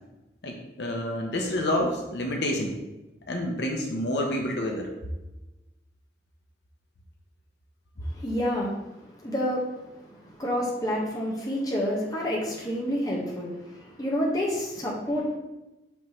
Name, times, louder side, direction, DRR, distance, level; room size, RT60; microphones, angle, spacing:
voice 1, 0.4-2.8 3.3-4.9, left 1 dB, 75° left, 1 dB, 0.9 m, -28 dB
voice 2, 8.0-10.1 10.4-15.4, equal, 20° left, -4 dB, 1.4 m, -29 dB
6.0 x 5.3 x 3.1 m, 1.0 s
head